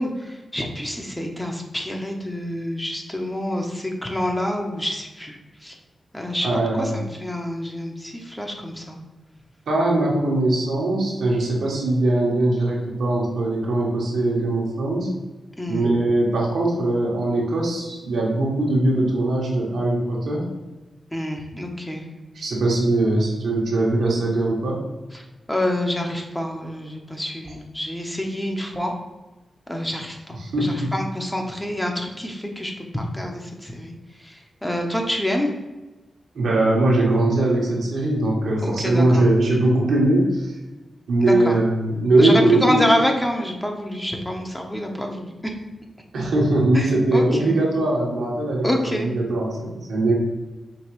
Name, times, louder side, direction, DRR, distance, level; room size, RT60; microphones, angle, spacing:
voice 1, 0.0-5.4 5.6-5.7 6.1-6.5 6.8-9.0 15.6-15.8 21.1-22.0 25.5-28.9 29.7-33.9 34.2-34.3 34.6-35.5 38.6-39.2 41.2-41.6 42.2-45.3 46.7-47.5 48.6-49.1, equal, 15° left, 1 dB, 0.9 m, -27 dB
voice 2, 6.4-7.0 9.7-15.1 15.7-20.5 22.3-24.8 30.4-30.9 36.3-40.5 41.1-42.8 46.1-50.1, right 2 dB, 80° right, -3 dB, 1.2 m, -21 dB
5.2 x 3.2 x 3.1 m, 1.1 s
supercardioid pair, 45°, 0 cm